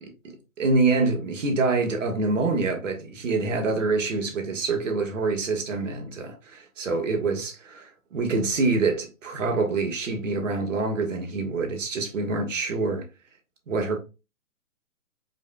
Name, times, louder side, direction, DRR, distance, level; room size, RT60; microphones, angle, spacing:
voice 1, 0.0-13.1 13.7-14.0, right 3 dB, 55° right, 1.7 m, -26 dB
4.9 x 4.7 x 2.2 m
figure-of-eight pair, 140°, 44 cm